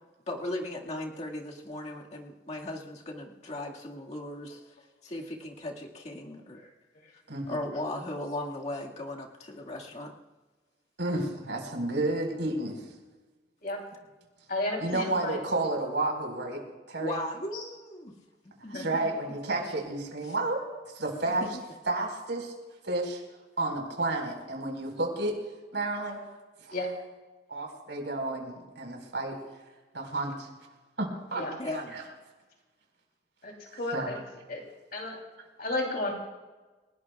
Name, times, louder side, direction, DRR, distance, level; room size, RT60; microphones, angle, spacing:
voice 1, 0.3-4.7 5.0-6.6 7.1-7.2 7.5-10.2 17.0-18.1 18.4-19.0 20.3-20.4 21.3-21.6 31.6-32.0, left 1 dB, 40° left, -2 dB, 1.9 m, -37 dB
voice 2, 7.3-7.6 11.0-12.8 14.8-16.6 16.9-17.2 18.7-21.4 21.9-22.5 22.8-23.2 23.6-25.4 25.7-26.2 26.6-26.8 27.5-29.4 29.9-30.5 31.0-32.0 33.7-34.2, right 2 dB, 80° right, 1 dB, 4.7 m, -31 dB
voice 3, 14.5-15.4 17.5-17.6 18.7-18.8 26.7-26.9 31.3-31.5 33.4-33.5 33.8-34.2 34.5-34.6 34.9-35.2 35.6-36.1, left 2 dB, 55° left, 0 dB, 3.2 m, -32 dB
29.5 x 18.0 x 2.4 m, 1.3 s
head